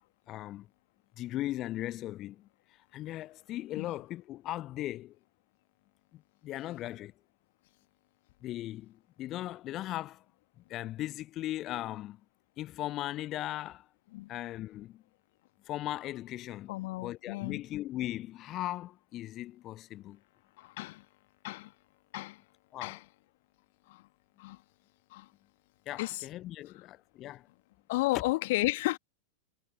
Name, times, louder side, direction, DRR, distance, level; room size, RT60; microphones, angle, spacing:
voice 1, 0.3-0.7 1.2-2.5 2.9-5.2 6.1-7.1 8.4-10.2 10.7-12.2 12.6-13.9 14.3-15.0 15.6-20.2 22.7-23.0 25.9-27.5, left 14 dB, 35° left, 0.8 m, -38 dB
voice 2, 16.7-17.6 20.6-21.1 21.4-21.7 22.1-22.4 22.8-23.0 23.9-24.0 24.4-24.6 25.1-25.3 26.0-26.3 27.9-29.0, left 20 dB, 50° left, 1.7 m, -33 dB
figure-of-eight pair, 90°, 0 cm